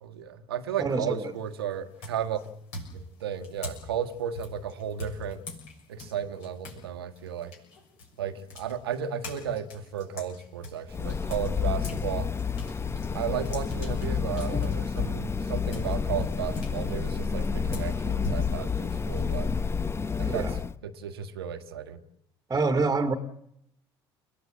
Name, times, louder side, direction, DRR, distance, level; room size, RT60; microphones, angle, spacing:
voice 1, 0.0-2.4 2.9-5.4 5.9-7.5 8.2-12.3 13.1-19.5 20.2-22.0, right 8 dB, 70° right, 7 dB, 1.5 m, -34 dB
voice 2, 0.8-1.3 20.2-20.6 22.5-23.1, right 3 dB, 20° right, 7 dB, 1.8 m, -26 dB
sound 1, 1.1-1.5 2.0-6.8 7.2-12.0 12.4-19.8, left 1 dB, 60° left, 6.6 m, -42 dB
sound 2, 10.9-20.7, left 6 dB, 20° left, 0.8 m, -29 dB
29.5 x 17.0 x 7.8 m, 0.76 s
figure-of-eight pair, 60°, 13 cm